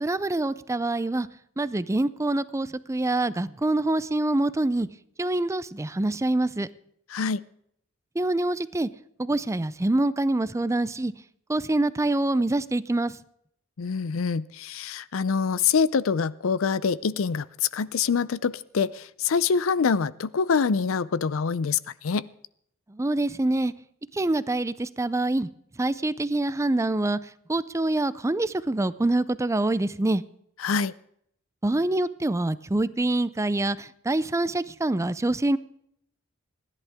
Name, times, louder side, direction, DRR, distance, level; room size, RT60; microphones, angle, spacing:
voice 1, 0.0-1.3 1.6-4.9 5.2-6.7 8.2-8.9 9.2-11.1 11.5-13.1 22.9-23.7 24.1-25.5 25.8-27.2 27.5-30.2 31.6-35.6, right 2 dB, 15° right, 16 dB, 0.4 m, -25 dB
voice 2, 7.1-7.4 13.8-17.5 17.7-22.3 30.6-30.9, left 5 dB, 75° left, 19 dB, 0.5 m, -25 dB
27.0 x 11.0 x 3.6 m, 0.71 s
head